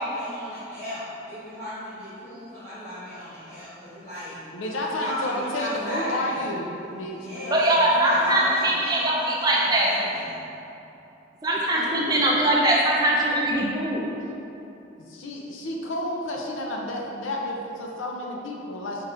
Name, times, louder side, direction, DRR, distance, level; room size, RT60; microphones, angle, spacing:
voice 1, 0.0-4.4 5.0-6.4 7.1-10.2, equal, 40° left, -16 dB, 1.2 m, -35 dB
voice 2, 4.5-8.7 11.7-12.0 15.1-19.0, left 1 dB, 85° left, -1 dB, 0.5 m, -31 dB
voice 3, 7.5-9.9 11.4-14.1, right 1 dB, 20° right, -3 dB, 0.4 m, -21 dB
4.7 x 4.6 x 2.5 m, 2.9 s
head